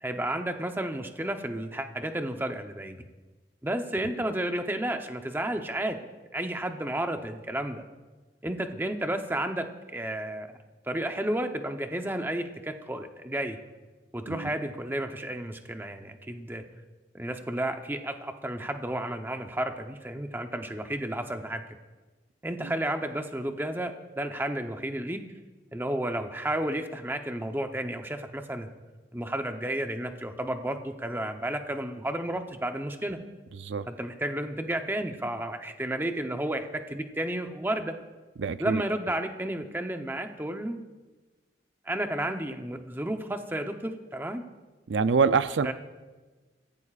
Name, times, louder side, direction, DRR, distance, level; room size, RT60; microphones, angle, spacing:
voice 1, 0.0-3.0 3.6-6.0 6.3-7.8 8.4-10.6 10.9-13.6 14.1-16.6 17.1-21.6 22.4-25.2 25.7-28.7 29.1-33.2 33.9-38.0 38.6-40.8 41.9-44.4 45.6-45.7, right 1 dB, 10° right, 6 dB, 0.8 m, -32 dB
voice 2, 33.5-33.9 38.4-38.8 44.9-45.7, right 5 dB, 90° right, 13 dB, 0.5 m, -26 dB
26.5 x 15.5 x 2.5 m, 1.3 s
head